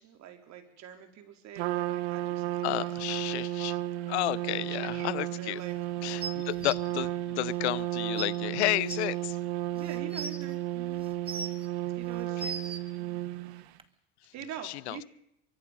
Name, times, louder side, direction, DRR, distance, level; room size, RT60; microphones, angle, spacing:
voice 1, 0.0-2.6 4.5-6.3 9.7-11.1 11.9-13.2 14.3-15.0, right 9 dB, 55° right, 4.4 m, -45 dB
Trumpet, 1.6-13.7, right 15 dB, 80° right, 1.4 m, -33 dB
voice 2, 2.6-3.8 4.1-5.6 6.0-9.4 14.6-15.0, left 19 dB, 85° left, 0.7 m, -32 dB
sound 1, 6.2-6.7 7.8-7.9 8.2-8.3 8.9-9.0 9.8-10.4 11.0-11.7 12.1-12.8 13.8-13.9, right 4 dB, 15° right, 2.2 m, -37 dB
24.0 x 24.0 x 5.4 m
hypercardioid pair, 90°, 32 cm